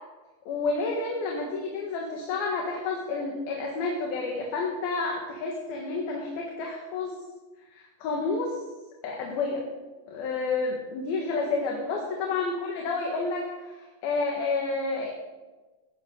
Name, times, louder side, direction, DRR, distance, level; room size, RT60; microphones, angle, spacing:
voice 1, 0.5-7.2 7.7-8.6 9.0-9.6 10.1-13.4 14.0-15.1, left 3 dB, 75° left, -1 dB, 3.4 m, -30 dB
19.5 x 10.5 x 3.8 m, 1.2 s
omnidirectional pair, 4.4 m